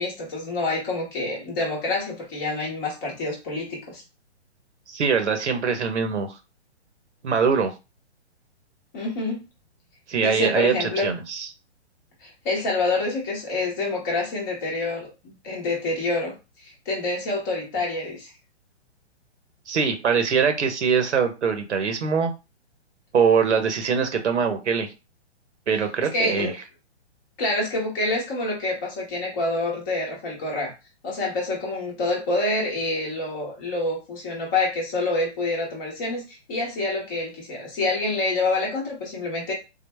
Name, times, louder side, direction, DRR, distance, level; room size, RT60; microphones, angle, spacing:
voice 1, 0.0-4.0 8.9-9.4 10.2-11.1 12.2-16.3 16.6-18.3 26.1-26.5 27.4-30.7 31.0-39.5, left 2 dB, 15° left, -3 dB, 0.8 m, -27 dB
voice 2, 4.9-6.3 7.2-7.7 10.1-11.5 19.7-22.3 23.1-24.9 25.7-26.5, right 6 dB, 80° right, 6 dB, 1.1 m, -22 dB
3.9 x 2.1 x 3.3 m, 0.27 s
hypercardioid pair, 165°, 34 cm